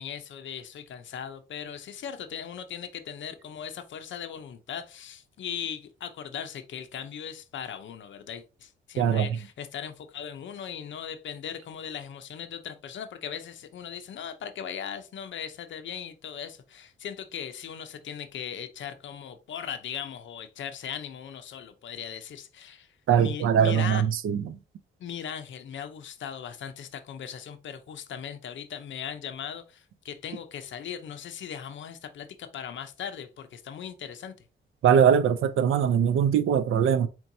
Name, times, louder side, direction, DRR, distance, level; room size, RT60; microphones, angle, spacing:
voice 1, 0.0-22.9 23.2-24.0 25.0-34.3, left 8 dB, 70° left, 0.6 m, -38 dB
voice 2, 9.0-9.3 23.1-24.4 34.8-37.1, right 8 dB, 90° right, 0.6 m, -21 dB
4.5 x 4.4 x 2.6 m
wide cardioid pair, 140°, 20 cm